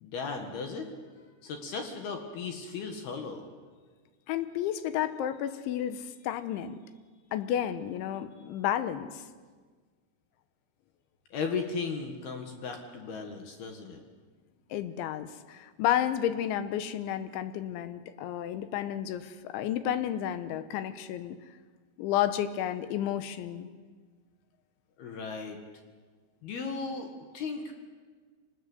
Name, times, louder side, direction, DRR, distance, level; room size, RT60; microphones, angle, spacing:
voice 1, 0.0-0.9 1.4-3.5 11.3-14.0 25.0-25.6 26.4-27.7, left 4 dB, 65° left, 4 dB, 3.3 m, -36 dB
voice 2, 4.3-6.8 7.3-9.2 14.7-21.4 22.0-23.7, left 11 dB, 80° left, 12 dB, 3.3 m, -31 dB
24.0 x 20.0 x 8.2 m, 1.5 s
omnidirectional pair, 5.4 m